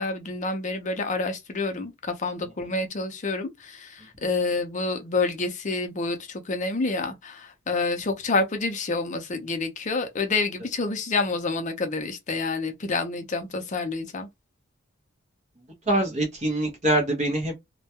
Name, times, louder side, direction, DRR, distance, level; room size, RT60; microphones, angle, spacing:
voice 1, 0.0-14.3, left 3 dB, 35° left, 0.5 m, -28 dB
voice 2, 15.9-17.5, right 1 dB, 35° right, 0.7 m, -24 dB
2.2 x 2.2 x 2.7 m
head